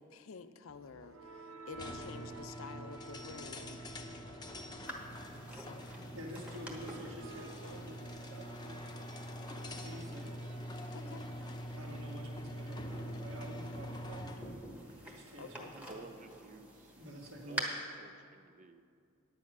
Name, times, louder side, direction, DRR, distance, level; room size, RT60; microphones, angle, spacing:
voice 1, 0.1-3.8 5.5-5.9 10.9-11.2 15.2-15.7, left 5 dB, 70° left, 11 dB, 0.5 m, -50 dB
sound 1, 0.7-12.6, right 3 dB, 85° right, 0.9 m, -54 dB
sound 2, 1.7-14.5, equal, 20° left, 0.7 m, -45 dB
sound 3, 4.9-17.6, equal, 5° right, 1.1 m, -49 dB
voice 2, 6.1-8.9 9.8-10.4 11.7-14.6 15.1-16.1 17.0-17.7, right 1 dB, 70° right, 0 dB, 1.7 m, -49 dB
voice 3, 15.9-17.0 17.5-18.8, right 3 dB, 35° right, 9 dB, 0.5 m, -53 dB
9.7 x 8.8 x 6.1 m, 2.4 s
head